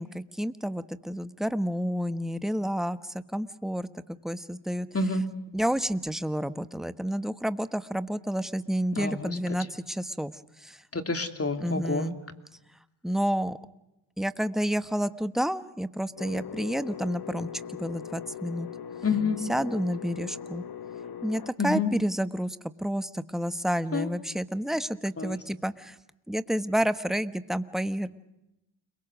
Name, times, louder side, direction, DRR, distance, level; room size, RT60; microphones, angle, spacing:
voice 1, 0.0-4.9 5.5-10.3 10.6-10.8 11.6-12.1 13.0-13.6 14.2-18.7 19.5-20.6 21.2-26.0 26.3-28.1, equal, ahead, 12 dB, 1.3 m, -30 dB
voice 2, 9.0-9.4 10.9-12.1 19.0-19.4 21.6-21.9 23.9-24.1 25.2-25.4, left 3 dB, 30° left, 7 dB, 3.0 m, -28 dB
sound 1, 16.2-21.5, left 7 dB, 50° left, 1.3 m, -40 dB
29.5 x 23.0 x 6.4 m, 0.90 s
cardioid pair, 65°, 48 cm